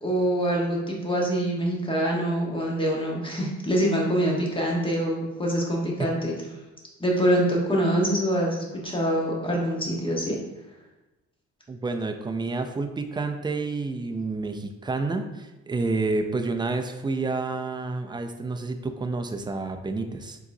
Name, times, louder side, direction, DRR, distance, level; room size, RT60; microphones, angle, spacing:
voice 1, 0.0-6.3 7.0-10.4, right 1 dB, 15° left, -2 dB, 1.3 m, -25 dB
voice 2, 11.7-20.4, right 3 dB, 15° right, 6 dB, 0.4 m, -29 dB
4.6 x 3.9 x 2.7 m, 1.1 s
cardioid pair, 90°, 30 cm